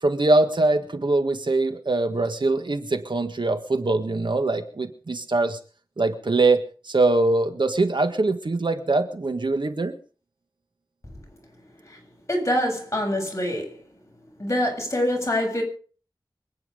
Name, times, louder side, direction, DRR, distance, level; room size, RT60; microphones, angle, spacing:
voice 1, 0.0-5.6 6.0-9.9, right 2 dB, 75° right, 1.7 m, -23 dB
voice 2, 12.3-13.7 14.4-15.6, left 1 dB, 35° left, 7.5 m, -25 dB
25.0 x 9.8 x 5.2 m
wide cardioid pair, 65°, 8 cm